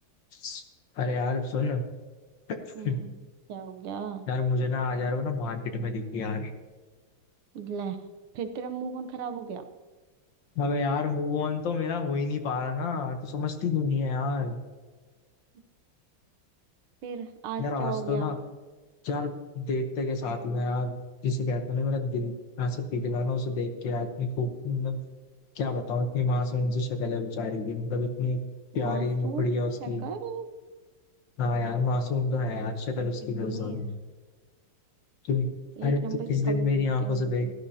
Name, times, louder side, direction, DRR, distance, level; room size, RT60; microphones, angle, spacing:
voice 1, 0.3-0.6 1.0-1.8 2.5-2.6 2.8-3.0 4.3-6.5 10.6-14.6 17.6-18.4 19.0-20.9 21.2-25.0 25.5-28.4 28.7-30.1 31.4-33.9 35.2-35.5 35.8-36.0 36.3-37.5, left 3 dB, 65° left, 6 dB, 1.7 m, -28 dB
voice 2, 2.8-3.1 3.5-4.2 7.5-8.0 8.3-9.7 17.0-18.3 28.7-29.5 29.8-30.5 33.2-33.9 35.8-37.5, right 6 dB, 90° right, 8 dB, 1.8 m, -36 dB
16.0 x 11.5 x 2.8 m, 1.4 s
omnidirectional pair, 2.3 m